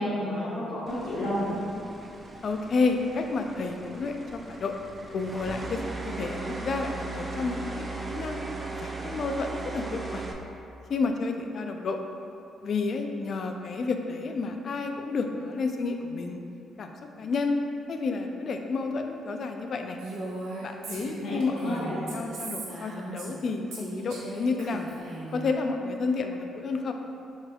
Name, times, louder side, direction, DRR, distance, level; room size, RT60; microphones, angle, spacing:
voice 1, 0.0-1.5 20.9-21.9, left 1 dB, 70° left, -10 dB, 0.9 m, -31 dB
sound 1, 0.9-10.3, right 3 dB, 30° right, 0.4 m, -38 dB
voice 2, 2.4-4.7 5.1-8.4 8.8-10.3 10.9-12.0 12.6-16.4 16.8-16.9 17.2-17.6 17.9-20.0 20.6-24.8 25.3-26.9, left 4 dB, 55° left, 5 dB, 0.4 m, -30 dB
Female speech woman speaking, 20.0-23.4 23.7-25.5, right 2 dB, 90° right, 0.8 m, -38 dB
6.3 x 3.3 x 2.3 m, 2.8 s
cardioid pair, 90°, 0 cm